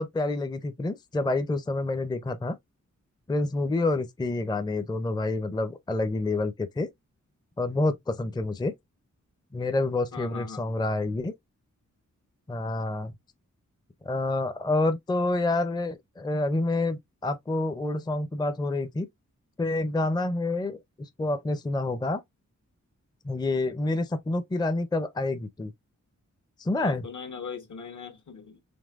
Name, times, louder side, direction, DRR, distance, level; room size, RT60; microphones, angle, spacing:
voice 1, 0.0-2.6 3.3-6.9 7.6-8.7 9.5-11.3 12.5-13.1 14.0-19.1 19.6-22.2 23.2-25.7 26.6-27.1, left 2 dB, 15° left, 0.4 m, -28 dB
voice 2, 10.1-10.7 26.8-28.6, left 6 dB, 70° left, 1.2 m, -40 dB
5.2 x 3.3 x 2.4 m
wide cardioid pair, 110°, 31 cm